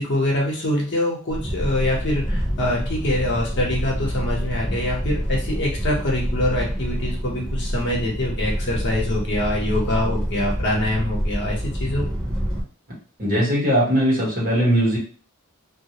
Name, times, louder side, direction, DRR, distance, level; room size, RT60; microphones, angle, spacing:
voice 1, 0.0-12.0, left 1 dB, 55° left, -2 dB, 0.8 m, -24 dB
sound 1, 1.3-12.6, equal, ahead, 0.8 m, -27 dB
voice 2, 13.2-15.0, equal, 40° right, -5 dB, 1.0 m, -19 dB
2.3 x 2.0 x 2.8 m, 0.40 s
head